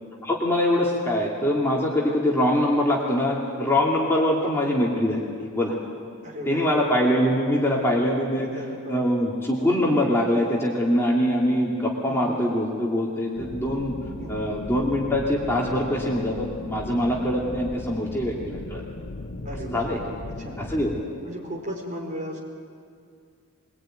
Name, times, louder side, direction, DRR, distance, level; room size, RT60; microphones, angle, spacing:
voice 1, 0.2-5.3 5.5-5.8 6.5-8.5 8.9-13.9 14.3-18.8 19.6-20.0 20.6-21.3, left 1 dB, 10° left, -3 dB, 2.7 m, -23 dB
voice 2, 6.2-6.7 8.4-9.2 12.1-12.5 14.2-14.5 19.4-20.6 21.2-22.4, equal, 35° right, 0 dB, 4.8 m, -37 dB
sound 1, 13.4-21.0, left 2 dB, 60° left, 1.0 m, -37 dB
23.0 x 22.5 x 9.3 m, 2.2 s
head